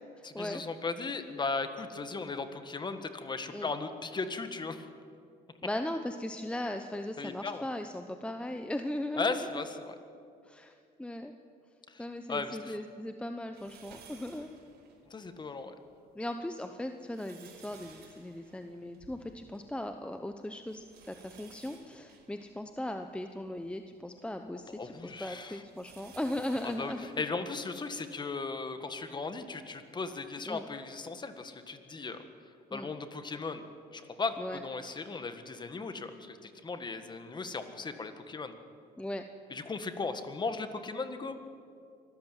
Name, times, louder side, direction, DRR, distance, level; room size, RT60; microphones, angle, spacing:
voice 1, 0.2-4.8 7.2-7.6 9.1-10.0 11.9-12.0 12.3-12.8 15.1-15.7 24.7-25.6 26.6-32.2 32.7-33.6 33.9-38.5 39.5-41.4, left 4 dB, 25° left, 9 dB, 1.7 m, -37 dB
voice 2, 5.6-9.7 10.4-10.7 11.0-11.3 12.0-14.5 16.2-27.1 30.5-30.7 32.7-32.9 34.4-34.6 39.0-39.2, left 1 dB, 5° left, 7 dB, 0.9 m, -38 dB
sound 1, 13.5-15.4 15.9-16.0 16.8-19.8 20.0-20.1 20.7-23.7 24.3-28.2 28.9-29.0 30.3-30.4, right 5 dB, 75° right, 4.9 m, -57 dB
24.5 x 14.0 x 9.2 m, 2.4 s
cardioid pair, 110°, 17 cm